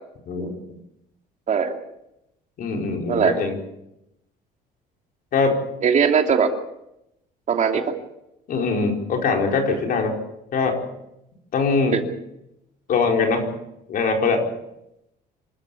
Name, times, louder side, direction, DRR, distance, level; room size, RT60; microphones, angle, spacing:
voice 1, 2.6-3.6 5.3-5.6 8.5-10.2 10.5-10.8 11.5-12.0 12.9-13.5 13.9-14.5, left 4 dB, 60° left, 2 dB, 4.7 m, -22 dB
voice 2, 5.8-6.5 7.5-7.9 9.3-9.6 11.9-12.0, right 7 dB, 45° right, 4 dB, 2.7 m, -20 dB
26.5 x 13.0 x 8.5 m, 0.85 s
cardioid pair, 110°, 17 cm